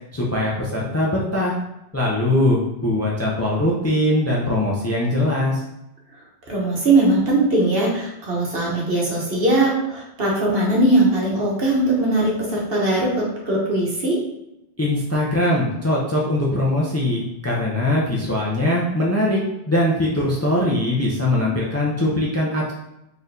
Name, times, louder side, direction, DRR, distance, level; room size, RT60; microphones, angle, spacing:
voice 1, 0.1-1.5 1.9-5.6 14.8-19.4 19.7-22.7, left 1 dB, 20° left, -4 dB, 0.4 m, -21 dB
voice 2, 6.5-14.2, right 2 dB, 55° right, -3 dB, 1.2 m, -20 dB
4.0 x 3.3 x 2.7 m, 0.88 s
omnidirectional pair, 1.2 m